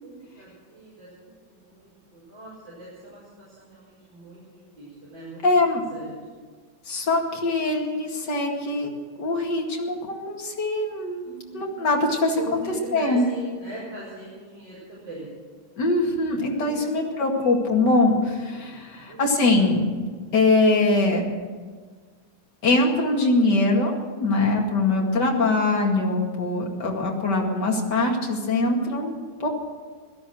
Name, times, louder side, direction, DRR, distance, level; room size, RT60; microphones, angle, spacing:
voice 1, 0.0-5.4 5.9-6.1 11.2-11.7 12.3-15.3 16.6-16.8 17.4-17.5 18.7-19.2, right 2 dB, 70° right, -8 dB, 5.8 m, -41 dB
voice 2, 5.4-5.8 6.9-8.9 9.2-11.2 11.5-12.6 12.9-13.2 15.8-19.9 20.3-21.3 22.6-23.9 24.2-29.5, left 2 dB, 55° left, 0 dB, 2.8 m, -22 dB
17.0 x 13.0 x 6.4 m, 1.5 s
omnidirectional pair, 2.2 m